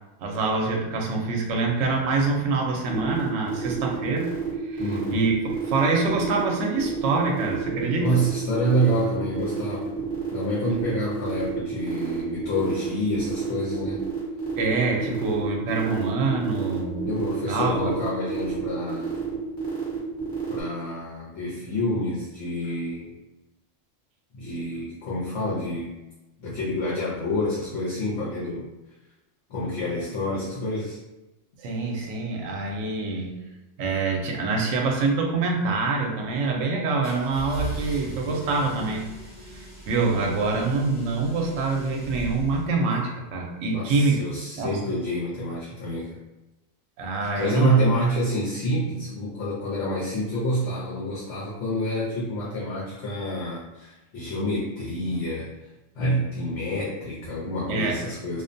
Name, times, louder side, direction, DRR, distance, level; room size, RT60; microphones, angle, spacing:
voice 1, 0.2-4.3 4.6-4.8 5.1-5.3 5.7-8.2 14.6-17.1 17.5-17.9 31.6-33.4 33.8-39.0 39.4-44.2 44.6-44.7 47.0-47.9 57.7-58.0, right 3 dB, 75° right, 1 dB, 0.9 m, -25 dB
sound 1, 2.9-20.6, right 6 dB, 20° left, 1.0 m, -30 dB
voice 2, 4.8-5.3 8.0-14.1 15.1-15.2 17.0-19.2 20.5-23.1 24.3-25.9 26.4-28.7 29.5-31.0 43.7-46.1 47.4-55.5 55.9-58.4, equal, 70° left, -6 dB, 1.0 m, -28 dB
sound 2, 37.0-43.0, right 2 dB, 45° left, 1.1 m, -38 dB
2.4 x 2.1 x 2.5 m, 1.0 s
omnidirectional pair, 1.3 m